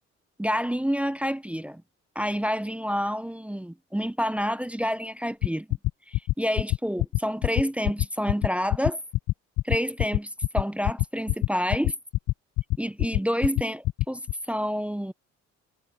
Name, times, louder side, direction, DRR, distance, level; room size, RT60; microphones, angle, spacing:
voice 1, 0.4-1.8 2.2-5.7 6.1-9.0 9.6-11.9 12.8-14.2 14.5-15.1, equal, 5° right, 0.6 m, -28 dB
sound 1, 5.4-14.3, left 17 dB, 75° left, 0.6 m, -23 dB
cardioid pair, 90°, 30 cm